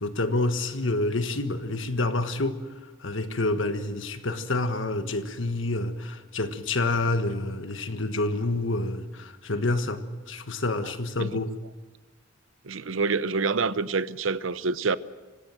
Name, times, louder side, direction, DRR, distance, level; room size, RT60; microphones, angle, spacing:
voice 1, 0.0-2.6 3.0-11.5, left 2 dB, 70° left, 1.5 m, -28 dB
voice 2, 12.6-15.0, right 4 dB, 85° right, 0.8 m, -27 dB
25.5 x 16.5 x 7.7 m
head